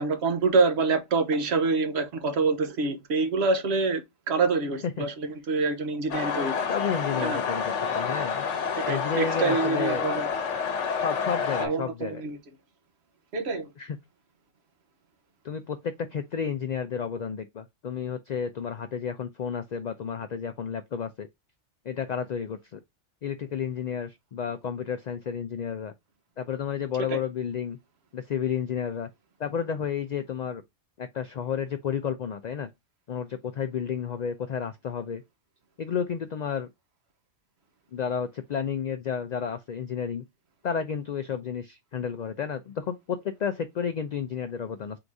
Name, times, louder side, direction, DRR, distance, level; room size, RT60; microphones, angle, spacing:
voice 1, 0.0-6.6 7.2-7.4 8.8-10.3 11.6-12.4 13.3-13.7 27.1-27.2, right 3 dB, 65° right, 1.1 m, -26 dB
sound 1, 6.1-11.7, left 6 dB, 80° left, 1.1 m, -29 dB
voice 2, 6.7-8.4 8.9-10.1 10.9-12.2 13.8-14.0 15.4-21.3 21.8-22.8 23.2-25.9 26.4-27.8 28.1-29.1 29.4-30.6 31.0-32.7 33.1-35.2 35.8-36.7 37.9-40.2 40.6-45.0, left 7 dB, 65° left, 0.4 m, -31 dB
3.9 x 2.6 x 4.6 m
omnidirectional pair, 1.2 m